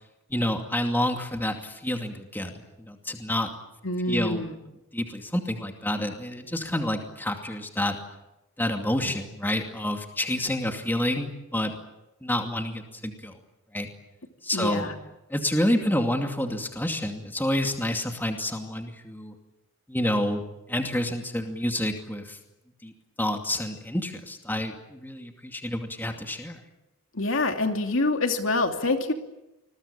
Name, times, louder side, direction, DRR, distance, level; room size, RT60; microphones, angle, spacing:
voice 1, 0.3-3.5 4.1-4.4 4.9-8.0 8.6-11.8 12.2-13.4 13.7-13.9 14.4-14.9 15.3-19.3 19.9-20.4 20.7-22.4 22.8-22.9 23.2-26.6, left 1 dB, 10° left, 4 dB, 2.5 m, -28 dB
voice 2, 3.8-4.6 14.5-14.9 27.1-29.1, left 2 dB, 60° left, 5 dB, 2.8 m, -26 dB
27.5 x 21.5 x 8.8 m, 0.94 s
head